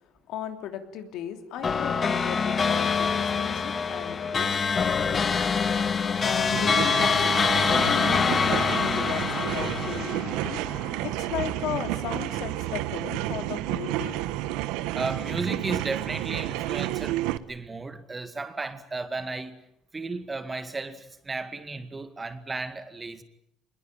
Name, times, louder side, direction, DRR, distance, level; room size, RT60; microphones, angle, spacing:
voice 1, 0.3-5.7 6.2-7.2 7.5-10.6 11.0-14.3, left 9 dB, 70° left, 3.2 m, -36 dB
sound 1, 1.6-11.3, left 5 dB, 30° left, 1.5 m, -25 dB
sound 2, 6.4-17.4, right 15 dB, 90° right, 1.1 m, -31 dB
voice 2, 14.9-19.6 19.9-23.2, right 3 dB, 20° right, 2.0 m, -34 dB
24.5 x 21.0 x 9.3 m
cardioid pair, 115°, 0 cm